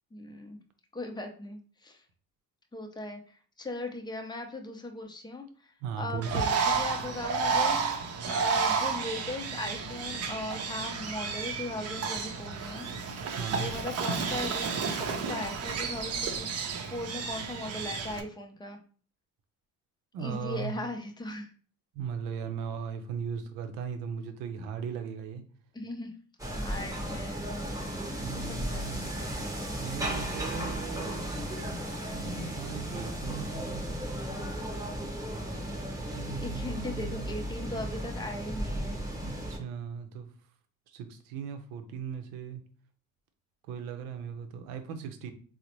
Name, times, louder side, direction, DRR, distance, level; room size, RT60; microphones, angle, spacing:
voice 1, 0.1-0.6 0.9-2.0 2.7-7.8 8.3-12.9 13.5-14.7 15.0-16.5 16.9-18.8 20.2-21.5 25.7-26.1 26.6-27.9 28.3-28.9 36.4-39.0, left 1 dB, 15° left, 3 dB, 0.6 m, -38 dB
voice 2, 5.8-6.4 13.4-13.7 20.1-20.8 21.9-25.4 28.2-29.1 29.8-33.8 36.1-37.3 39.2-40.3 40.9-42.6 43.7-45.3, right 6 dB, 90° right, 7 dB, 0.6 m, -38 dB
Bird, 6.2-18.2, right 5 dB, 45° right, 0.6 m, -31 dB
sound 1, 26.4-39.6, right 1 dB, 10° right, 0.9 m, -35 dB
3.8 x 2.1 x 2.9 m, 0.42 s
supercardioid pair, 95°, 34 cm